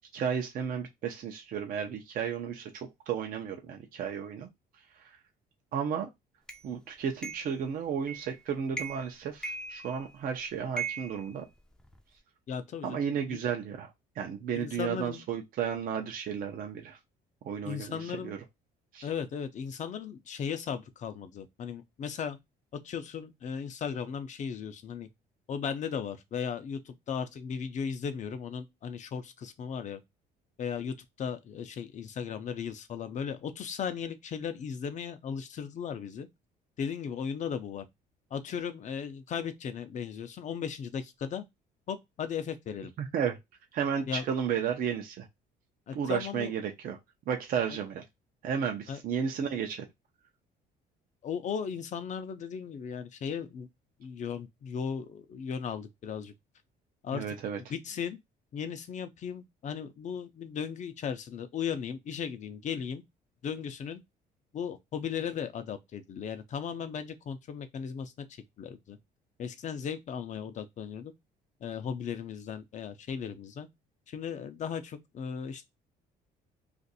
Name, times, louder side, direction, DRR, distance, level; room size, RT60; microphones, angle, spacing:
voice 1, 0.1-4.5 5.0-5.2 5.7-6.1 6.6-11.5 12.8-17.0 17.4-18.4 18.9-19.1 43.0-43.4 43.7-45.3 45.9-47.0 47.3-48.0 48.4-49.8 57.1-57.6, right 7 dB, 55° right, 0.6 m, -33 dB
sound 1, 6.5-6.6 7.2-7.6 8.1-8.4 8.7-9.1 9.4-10.2 10.8-12.0, right 4 dB, 5° left, 0.5 m, -38 dB
voice 2, 12.5-13.0 13.3-13.4 14.5-15.2 17.6-18.3 19.0-22.4 22.8-25.1 25.5-30.0 30.6-36.3 36.8-37.8 38.3-41.4 41.9-42.9 44.1-44.3 45.9-46.5 48.9-49.0 51.2-53.7 54.0-56.3 57.0-57.2 57.7-58.2 58.5-63.0 63.4-64.0 64.5-68.1 68.6-69.0 69.4-71.1 71.6-73.7 74.1-75.6, left 7 dB, 45° left, 0.6 m, -36 dB
2.5 x 2.5 x 4.0 m
cardioid pair, 110°, 17 cm